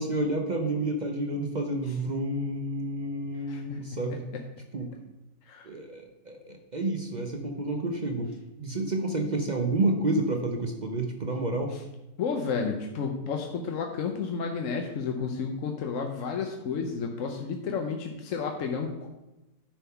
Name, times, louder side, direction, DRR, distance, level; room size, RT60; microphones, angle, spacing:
voice 1, 0.0-4.3 4.7-4.9 5.6-8.3 8.6-11.7, right 2 dB, 45° right, 3 dB, 0.6 m, -29 dB
voice 2, 3.5-3.8 4.1-4.4 5.5-5.7 11.7-11.8 12.2-19.1, left 5 dB, 60° left, 3 dB, 1.0 m, -32 dB
9.9 x 3.7 x 5.7 m, 0.98 s
omnidirectional pair, 1.6 m